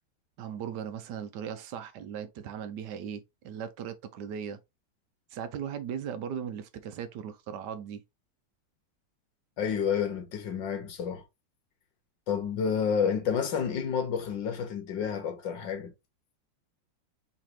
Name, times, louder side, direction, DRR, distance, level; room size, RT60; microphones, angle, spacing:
voice 1, 0.4-4.6 5.3-8.0, right 8 dB, 75° right, 1.2 m, -38 dB
voice 2, 9.6-11.2 12.3-15.9, left 7 dB, 85° left, 1.8 m, -30 dB
4.2 x 4.1 x 3.1 m
omnidirectional pair, 2.0 m